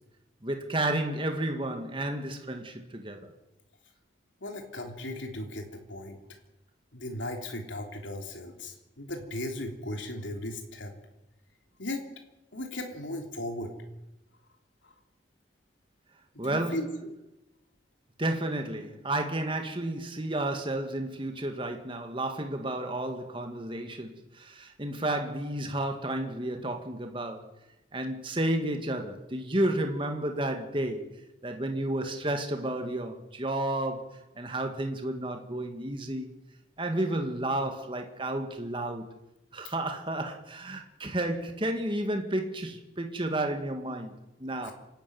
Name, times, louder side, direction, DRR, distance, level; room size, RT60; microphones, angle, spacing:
voice 1, 0.4-3.3 16.4-16.8 18.2-27.5 27.9-31.1 31.4-36.3 36.8-39.1 39.5-44.7, right 1 dB, 25° right, 1.9 m, -32 dB
voice 2, 4.4-6.2 6.9-10.9 11.8-12.0 12.5-13.7 14.8-14.9 16.4-16.9 44.6-44.7, left 1 dB, 85° left, 3.3 m, -36 dB
26.0 x 12.5 x 9.4 m
head